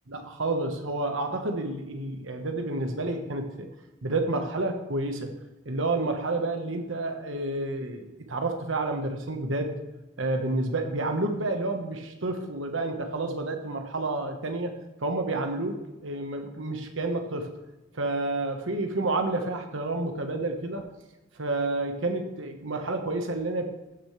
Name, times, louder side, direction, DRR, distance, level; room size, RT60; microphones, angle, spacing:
voice 1, 0.1-3.7 4.0-5.3 5.6-9.7 10.2-14.7 15.0-17.5 17.9-20.9 21.4-23.7, right 2 dB, 80° right, 5 dB, 1.3 m, -29 dB
15.5 x 6.6 x 3.3 m, 1.0 s
head